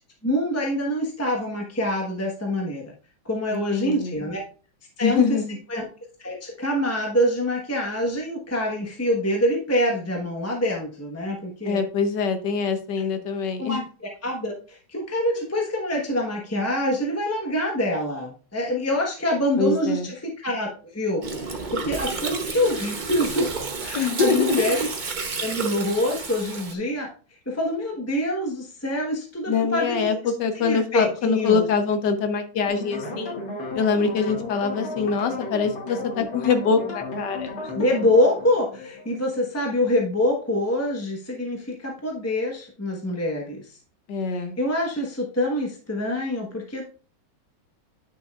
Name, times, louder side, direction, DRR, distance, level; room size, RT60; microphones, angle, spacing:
voice 1, 0.2-2.9 3.2-4.4 5.0-5.4 5.7-5.9 6.2-11.8 12.9-13.0 13.6-23.5 23.8-24.9 25.4-27.1 27.5-30.1 30.5-31.6 37.7-43.8 44.3-46.8, left 1 dB, 10° left, 0 dB, 0.8 m, -25 dB
voice 2, 3.5-4.2 5.0-5.6 11.7-13.8 19.6-20.1 23.9-24.7 29.5-33.4 33.7-37.7 44.1-44.6, left 5 dB, 65° left, 7 dB, 1.4 m, -24 dB
Gurgling, 21.2-26.7, right 4 dB, 45° right, 0.6 m, -31 dB
sound 1, 32.7-39.7, left 2 dB, 90° left, 2.7 m, -34 dB
9.5 x 6.2 x 2.4 m, 0.38 s
omnidirectional pair, 2.2 m